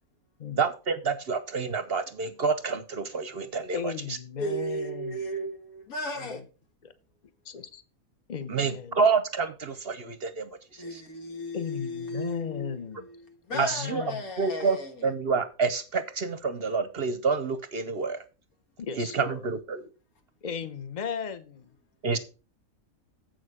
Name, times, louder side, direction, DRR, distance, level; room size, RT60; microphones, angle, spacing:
voice 1, 0.6-3.9 8.5-11.0 13.6-14.0 14.4-14.8 15.0-18.2 19.0-19.8 22.0-22.2, right 5 dB, 55° right, 0.8 m, -28 dB
voice 2, 3.7-5.2 6.1-6.4 6.8-6.9 7.4-7.8 8.3-9.0 11.5-13.1 13.5-14.3 18.8-19.4 20.4-21.7, left 7 dB, 35° left, 0.8 m, -36 dB
voice 3, 4.4-6.4 10.8-15.1, equal, 90° left, 1.9 m, -35 dB
7.7 x 6.5 x 4.9 m
omnidirectional pair, 1.5 m